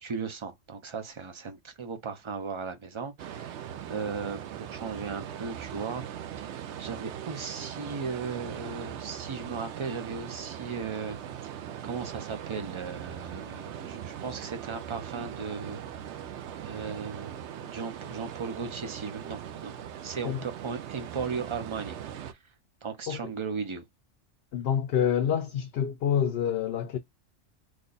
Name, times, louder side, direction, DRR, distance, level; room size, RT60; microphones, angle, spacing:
voice 1, 0.0-6.0 6.4-11.2 11.5-16.2 16.6-19.8 20.0-22.4 22.8-23.9, right 5 dB, 40° right, 0.4 m, -37 dB
sound 1, 3.2-22.3, right 9 dB, 70° right, 0.8 m, -40 dB
voice 2, 24.5-27.0, left 9 dB, 65° left, 0.7 m, -27 dB
3.2 x 2.2 x 3.8 m
omnidirectional pair, 1.3 m